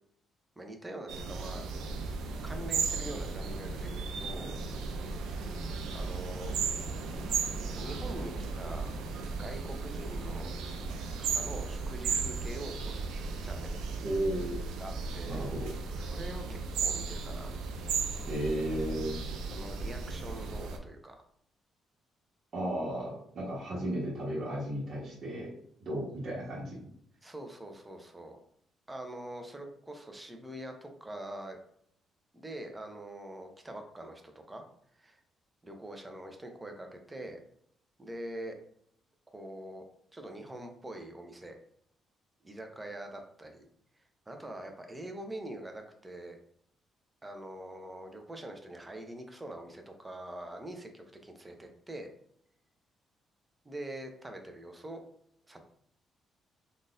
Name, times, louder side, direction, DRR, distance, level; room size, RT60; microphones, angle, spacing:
voice 1, 0.6-1.6 2.4-4.6 5.9-6.5 7.8-8.9 9.4-10.5 11.2-13.1 13.4-13.8 14.8-15.4 15.9-17.5 19.5-21.2 27.2-28.4 28.9-31.6 32.3-34.6 34.9-35.2 35.6-37.4 38.0-38.6 39.3-39.8 40.1-41.6 42.4-43.7 44.3-46.4 47.2-52.1 53.6-55.0 55.5-55.6, right 1 dB, 15° right, 4 dB, 0.7 m, -44 dB
sound 1, 1.1-20.8, right 4 dB, 90° right, 0.4 m, -35 dB
voice 2, 14.0-14.6 15.3-15.7 18.2-19.2 22.5-25.5 25.8-26.8, right 1 dB, 55° right, -5 dB, 1.2 m, -34 dB
3.8 x 2.5 x 2.5 m, 0.68 s
cardioid pair, 90°, 0 cm